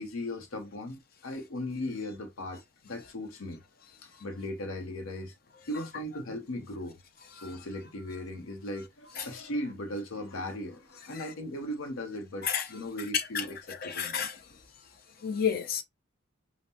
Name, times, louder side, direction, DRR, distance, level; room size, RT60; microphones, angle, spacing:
voice 1, 0.0-3.6 4.0-5.3 5.7-7.0 7.3-14.2, left 1 dB, 80° left, 0.7 m, -38 dB
voice 2, 13.1-13.4 13.8-14.3 15.2-15.8, left 7 dB, 45° left, 0.7 m, -30 dB
5.3 x 2.0 x 2.8 m
head